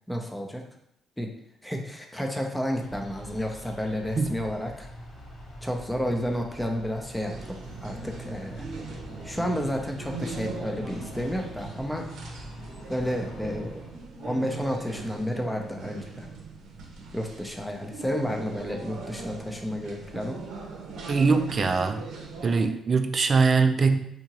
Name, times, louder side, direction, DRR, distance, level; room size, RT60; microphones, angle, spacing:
voice 1, 0.1-0.6 1.2-1.3 1.6-4.9 5.6-7.3 7.8-8.6 9.2-12.0 12.9-13.8 14.2-16.3 17.1-20.4, equal, 5° left, 2 dB, 0.6 m, -31 dB
sound 1, 2.7-14.1, equal, 75° left, 1.3 m, -44 dB
sound 2, 7.2-22.7, right 3 dB, 80° right, 0.7 m, -40 dB
voice 2, 21.1-22.0 22.4-24.0, right 4 dB, 40° right, 6 dB, 0.4 m, -22 dB
3.5 x 2.8 x 2.9 m, 0.76 s
cardioid pair, 90°, 0 cm